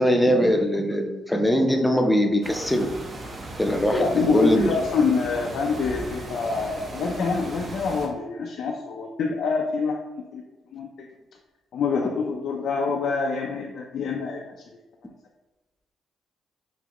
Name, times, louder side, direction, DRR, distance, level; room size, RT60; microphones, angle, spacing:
voice 1, 0.0-2.9 3.6-4.7, equal, 10° left, 4 dB, 0.5 m, -21 dB
sound 1, 2.4-8.1, right 2 dB, 40° right, 0.7 m, -37 dB
voice 2, 3.9-10.4 10.7-11.1 11.7-14.4, left 4 dB, 65° left, 0 dB, 0.4 m, -26 dB
5.8 x 2.1 x 2.9 m, 1.1 s
cardioid pair, 90°, 0 cm